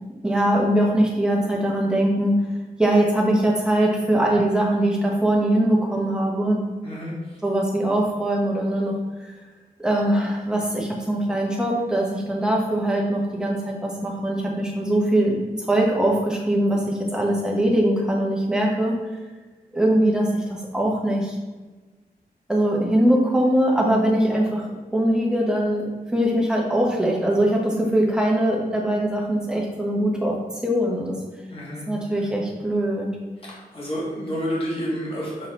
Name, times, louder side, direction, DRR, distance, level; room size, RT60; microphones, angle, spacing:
voice 1, 0.0-2.4 2.8-6.6 7.4-9.3 9.8-19.0 19.7-21.4 22.5-30.4 30.6-31.2 31.9-33.1, right 1 dB, 5° right, -2 dB, 1.1 m, -22 dB
voice 2, 6.8-7.4 31.5-32.3 33.5-35.5, equal, 35° left, -6 dB, 1.8 m, -30 dB
6.6 x 4.1 x 3.8 m, 1.3 s
wide cardioid pair, 170°, 16 cm